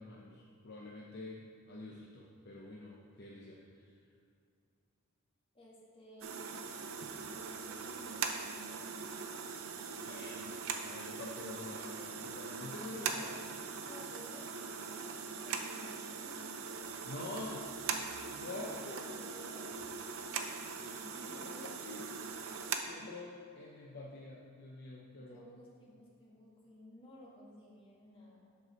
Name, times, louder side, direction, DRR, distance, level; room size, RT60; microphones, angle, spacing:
voice 1, 0.0-3.9 10.1-13.3 17.0-17.7 18.3-19.6 20.7-22.1 22.8-25.4, left 2 dB, 50° left, -3 dB, 0.7 m, -47 dB
voice 2, 5.5-6.5 7.4-9.0 13.0-13.4 13.8-14.9 15.3-17.0 18.4-20.0 20.7-22.1 25.2-28.5, equal, 25° left, -5 dB, 1.9 m, -55 dB
sound 1, 6.2-22.8, right 5 dB, 70° right, 0.6 m, -41 dB
7.7 x 4.7 x 6.3 m, 2.4 s
head